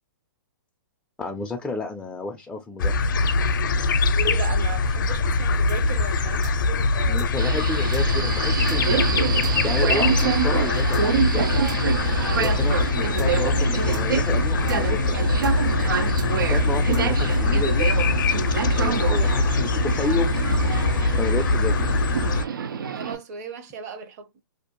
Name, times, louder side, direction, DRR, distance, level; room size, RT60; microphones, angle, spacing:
voice 1, 1.2-3.1 7.1-9.1 9.6-11.5 12.4-15.3 16.3-17.9 18.8-20.4 21.2-22.0, left 3 dB, 5° left, 0.3 m, -31 dB
sound 1, 2.8-22.5, left 3 dB, 70° left, 0.5 m, -22 dB
voice 2, 4.2-7.3 12.2-12.5 15.7-16.1 22.9-24.4, right 4 dB, 50° right, 0.7 m, -36 dB
sound 2, 5.7-5.8 6.1-6.2 6.4-6.6 6.8-6.9 7.2-7.3 7.6-7.7 7.9-8.1 8.3-8.4 8.7-8.8 9.1-9.2 9.4-9.6 9.8-9.9 10.2-10.3 10.6-11.1 11.3-11.4 11.7-11.8 12.1-12.2 12.4-12.6 12.8-12.9 13.2-13.3 13.6-13.7 13.9-14.1 14.3-14.4 14.7-14.8 15.1-15.2 15.4-15.6 15.8-15.9 16.2-16.3 16.6-17.1 17.3-17.4, equal, 65° right, 1.1 m, -39 dB
Subway metro underground, 7.4-23.1, right 7 dB, 85° right, 0.4 m, -27 dB
2.6 x 2.0 x 2.8 m
hypercardioid pair, 135°, 11 cm